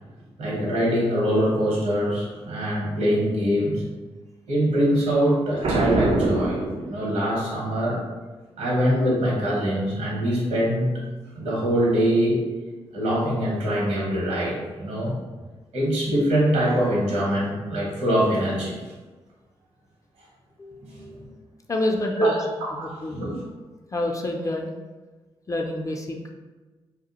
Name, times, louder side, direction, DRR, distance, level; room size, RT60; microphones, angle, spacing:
voice 1, 0.4-3.8 4.5-6.6 6.9-8.0 8.6-10.9 11.3-12.4 12.9-15.1 15.7-18.8 20.9-21.2 22.2-22.3 22.8-23.4, equal, 80° right, -5 dB, 0.8 m, -23 dB
Boom, 5.6-7.5, right 2 dB, 55° right, 0.4 m, -25 dB
voice 2, 21.7-22.3 22.7-23.3 23.9-24.7 25.5-26.3, left 1 dB, 30° left, 1 dB, 0.4 m, -28 dB
2.2 x 2.0 x 2.8 m, 1.3 s
supercardioid pair, 45°, 12 cm